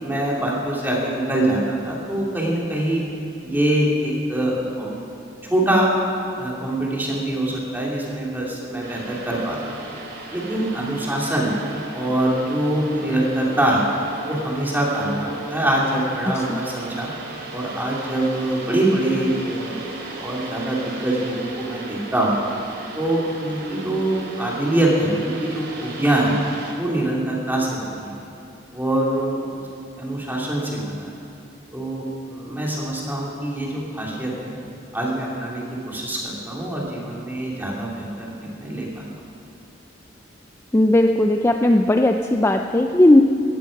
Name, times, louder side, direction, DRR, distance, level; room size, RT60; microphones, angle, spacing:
voice 1, 0.0-3.0 3.4-5.0 5.5-5.9 6.4-9.7 10.3-11.5 11.9-13.8 14.3-17.1 17.5-22.3 22.9-26.3 26.8-28.2 28.7-29.6 30.0-31.1 31.7-34.6 34.9-39.0, right 1 dB, 10° right, -4 dB, 3.0 m, -24 dB
sound 1, 8.8-26.7, right 3 dB, 55° right, 2.9 m, -37 dB
voice 2, 40.7-43.2, left 1 dB, 15° left, 4 dB, 0.4 m, -16 dB
17.0 x 14.0 x 5.3 m, 2.8 s
head